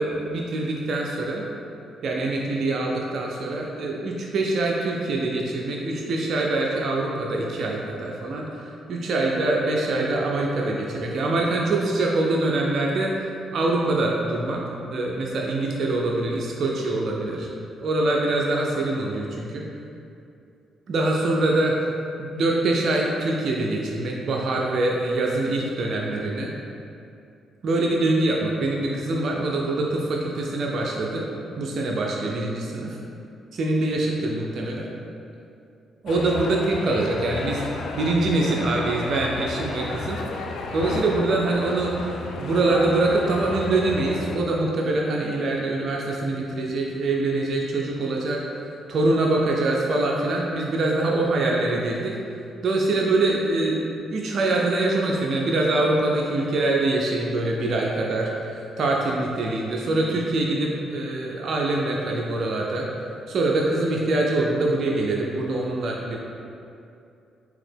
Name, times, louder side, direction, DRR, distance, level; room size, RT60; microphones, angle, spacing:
voice 1, 0.0-1.4 2.0-13.1 13.5-14.6 14.9-17.5 17.8-19.6 20.9-21.9 22.2-26.5 27.6-31.3 31.6-33.0 33.5-34.9 36.0-37.6 37.9-52.2 52.6-62.9 63.3-66.2, right 2 dB, 60° right, -2 dB, 0.4 m, -24 dB
sound 1, 36.1-44.4, left 3 dB, 70° left, 0.3 m, -33 dB
3.8 x 2.9 x 3.4 m, 2.6 s
hypercardioid pair, 50°, 0 cm